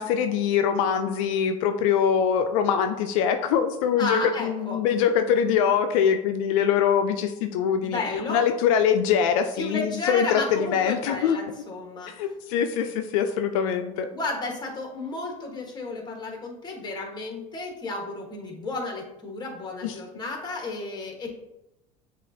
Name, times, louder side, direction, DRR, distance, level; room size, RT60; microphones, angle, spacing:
voice 1, 0.0-8.0 8.3-11.4 12.1-14.1 19.8-19.9, left 8 dB, 80° left, 7 dB, 0.4 m, -23 dB
voice 2, 4.0-4.8 7.8-8.4 9.6-12.1 14.1-21.3, left 3 dB, 25° left, 1 dB, 1.3 m, -32 dB
7.2 x 2.5 x 2.7 m, 0.87 s
supercardioid pair, 95°, 17 cm